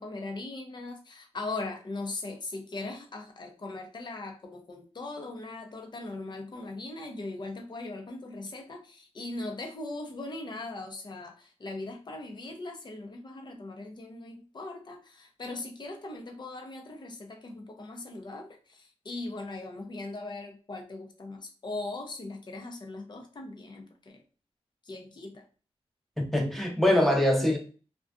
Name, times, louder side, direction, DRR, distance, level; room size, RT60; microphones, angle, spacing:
voice 1, 0.0-24.2 24.9-25.4, left 2 dB, 45° left, 0.6 m, -39 dB
voice 2, 26.2-27.6, left 1 dB, ahead, 0.7 m, -23 dB
2.4 x 2.2 x 2.4 m
cardioid pair, 70°, 11 cm